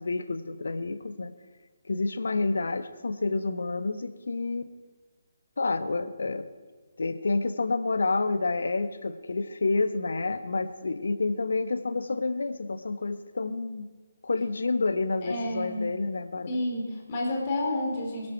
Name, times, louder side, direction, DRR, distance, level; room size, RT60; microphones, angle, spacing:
voice 1, 0.0-1.3 1.9-4.7 5.6-6.5 7.0-13.9 14.2-16.5, left 3 dB, 60° left, 11 dB, 1.0 m, -29 dB
voice 2, 15.2-15.8 16.5-18.3, left 1 dB, 35° left, -1 dB, 4.0 m, -30 dB
23.0 x 10.5 x 4.5 m, 1.4 s
figure-of-eight pair, 140°, 0 cm